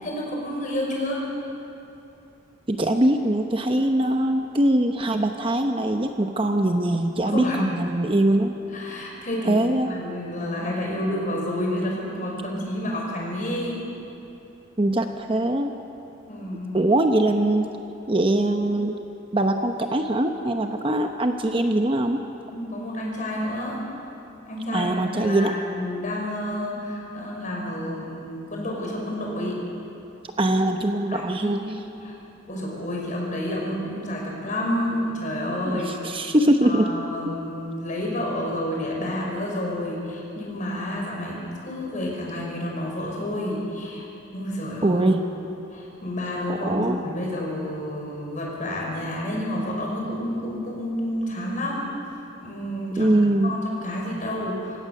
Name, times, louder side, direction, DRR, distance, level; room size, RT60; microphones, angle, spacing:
voice 1, 0.0-1.3 7.3-7.8 8.7-13.8 16.3-16.8 22.5-23.9 24.5-29.6 31.1-32.1 32.5-36.1 36.6-44.0 44.3-45.1 45.7-51.9 52.4-53.2 53.4-54.8, left 1 dB, 40° left, -2 dB, 5.5 m, -30 dB
voice 2, 2.7-8.5 9.5-9.9 14.8-15.7 16.7-17.7 18.1-18.9 19.3-22.2 24.7-25.5 30.4-31.7 35.6-36.9 44.8-45.3 46.5-47.0 53.0-53.6, right 1 dB, 25° right, 5 dB, 0.9 m, -22 dB
25.5 x 16.5 x 6.7 m, 2.8 s
head